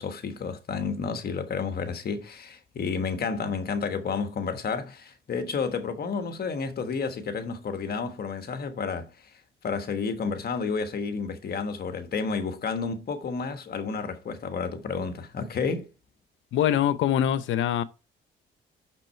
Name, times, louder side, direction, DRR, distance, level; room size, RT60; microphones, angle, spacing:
voice 1, 0.0-9.1 9.6-15.9, left 5 dB, 50° left, 1.3 m, -31 dB
voice 2, 16.5-17.8, left 10 dB, 80° left, 0.7 m, -23 dB
6.3 x 6.0 x 4.4 m
cardioid pair, 90°, 20 cm